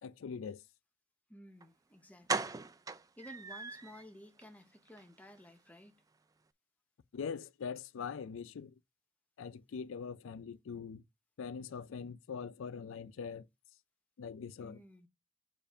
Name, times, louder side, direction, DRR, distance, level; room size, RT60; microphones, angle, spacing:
voice 1, 0.0-0.6 7.1-8.7 9.4-11.0 11.4-13.5 14.2-14.8, left 6 dB, 75° left, 0.4 m, -42 dB
voice 2, 1.3-2.5 3.2-6.0 14.6-15.1, equal, 5° left, 0.7 m, -54 dB
sound 1, 1.6-1.7 2.3-4.0 4.4-4.5 4.9-5.0 5.3-5.4, right 4 dB, 15° right, 0.3 m, -38 dB
6.9 x 2.5 x 5.4 m
head